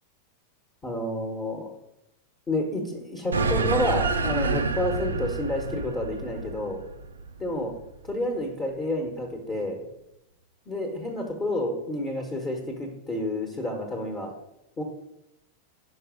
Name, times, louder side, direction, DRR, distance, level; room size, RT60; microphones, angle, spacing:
voice 1, 0.8-1.7 2.5-6.8 7.4-7.7 8.0-9.8 10.7-14.3 14.8-14.9, left 1 dB, 20° left, 1 dB, 1.2 m, -29 dB
sound 1, 3.3-8.1, right 3 dB, 75° right, 0.5 m, -28 dB
5.5 x 5.4 x 5.0 m, 0.86 s
figure-of-eight pair, 90°, 0 cm